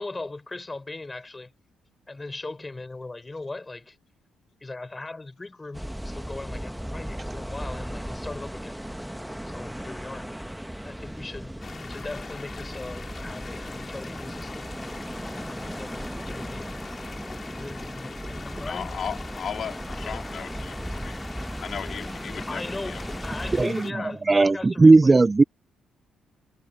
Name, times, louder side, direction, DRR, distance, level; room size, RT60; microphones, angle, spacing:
voice 1, 0.0-1.5 2.1-4.0 4.6-8.8 9.4-10.3 10.8-11.6 11.8-14.7 15.5-16.6 17.5-19.0 22.5-25.2, left 2 dB, 20° left, 6.5 m, -39 dB
sound 1, 5.7-23.7, equal, 5° right, 1.2 m, -36 dB
sound 2, 11.6-23.9, left 4 dB, 40° left, 3.3 m, -42 dB
voice 2, 18.6-21.2 21.6-23.0 23.4-23.5 23.9-24.1, left 7 dB, 60° left, 3.8 m, -36 dB
voice 3, 23.5-23.9 24.3-25.4, right 3 dB, 25° right, 0.5 m, -16 dB
supercardioid pair, 65°, 0 cm